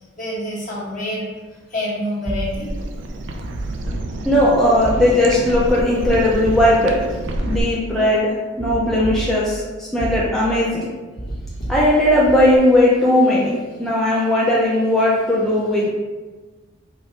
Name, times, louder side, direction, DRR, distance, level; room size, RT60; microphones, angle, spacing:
voice 1, 0.2-1.2 1.7-2.7, left 1 dB, 45° left, -7 dB, 1.3 m, -26 dB
sound 1, 2.2-2.9 3.4-4.5 4.8-5.5 6.0-8.0 8.6-9.6 10.0-10.6 11.2-12.6, right 2 dB, 80° left, 1.3 m, -30 dB
sound 2, 2.4-7.6, right 1 dB, 70° right, 0.4 m, -29 dB
voice 2, 4.2-7.1 7.4-10.9 11.7-15.9, left 1 dB, ahead, -7 dB, 0.4 m, -17 dB
4.6 x 2.2 x 3.1 m, 1.3 s
head